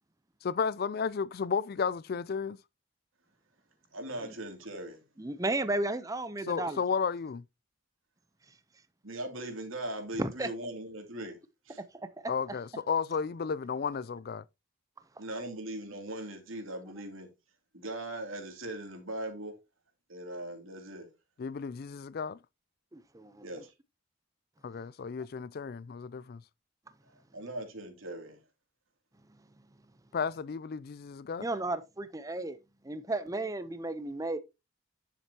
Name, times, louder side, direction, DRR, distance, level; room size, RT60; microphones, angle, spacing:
voice 1, 0.4-2.6 6.5-7.4 12.3-14.5 21.4-22.4 24.6-26.4 30.1-31.5, left 6 dB, 45° left, 0.3 m, -33 dB
voice 2, 3.9-5.0 9.0-11.4 11.7-11.8 15.2-17.3 17.7-19.5 20.1-21.1 23.4-23.7 27.3-28.4, right 1 dB, 75° right, 2.7 m, -39 dB
voice 3, 5.2-6.8 10.2-10.5 12.5-12.6 22.9-23.5 31.4-32.6 32.8-34.4, right 2 dB, 15° right, 0.6 m, -33 dB
10.0 x 7.4 x 2.8 m
head